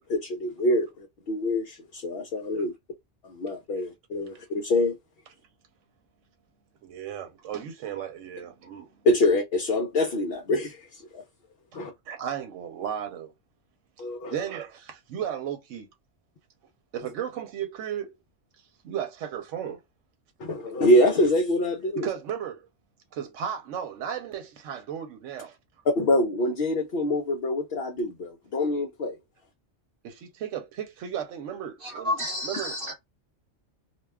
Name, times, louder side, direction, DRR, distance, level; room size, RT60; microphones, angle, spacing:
voice 1, 0.0-2.7 3.2-4.9 9.0-11.2 11.7-11.9 14.0-14.5 20.4-22.1 25.9-29.2, left 1 dB, 60° left, 0.7 m, -25 dB
voice 2, 6.8-8.9 11.7-11.8 12.1-13.3 14.3-15.9 16.9-18.2 18.8-19.8 21.9-22.7 23.1-25.6 30.0-32.2 32.4-32.8, right 9 dB, 75° right, 0.9 m, -35 dB
voice 3, 31.8-32.9, left 1 dB, 50° right, 1.0 m, -30 dB
2.4 x 2.2 x 3.3 m
omnidirectional pair, 1.3 m